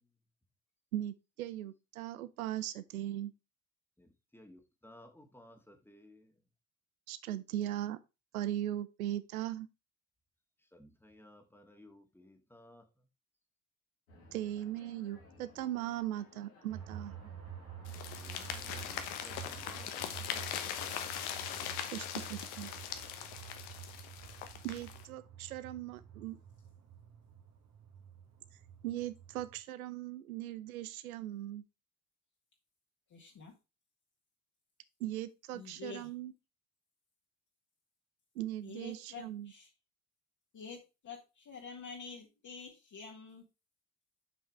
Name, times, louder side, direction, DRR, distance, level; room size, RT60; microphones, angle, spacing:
voice 1, 0.9-3.3 7.1-8.0 8.3-9.7 14.3-17.2 21.9-22.7 24.6-26.4 28.8-31.6 35.0-36.3 38.4-39.5, right 13 dB, 80° right, 0.7 m, -39 dB
voice 2, 4.0-6.2 10.7-12.8 18.2-20.4, left 1 dB, 5° left, 1.9 m, -57 dB
sound 1, 14.1-22.5, left 4 dB, 85° left, 2.2 m, -60 dB
sound 2, 16.7-29.6, right 9 dB, 40° right, 1.8 m, -50 dB
sound 3, 17.9-25.0, left 9 dB, 65° left, 1.2 m, -41 dB
voice 3, 33.1-33.5 35.5-36.1 38.6-39.7 40.5-43.4, left 5 dB, 45° left, 2.1 m, -48 dB
8.0 x 5.5 x 3.3 m
figure-of-eight pair, 50°, 42 cm